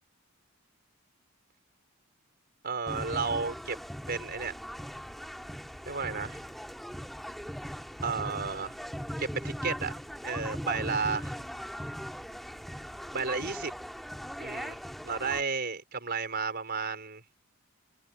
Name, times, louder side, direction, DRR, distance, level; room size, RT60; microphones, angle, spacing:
voice 1, 2.6-3.8 4.1-4.5 5.9-6.4 8.0-8.7 9.2-9.9 10.2-11.3 13.1-13.7 14.4-14.8 15.0-17.2, right 5 dB, 45° right, 4.5 m, -32 dB
sound 1, 2.9-15.4, equal, ahead, 1.9 m, -39 dB
head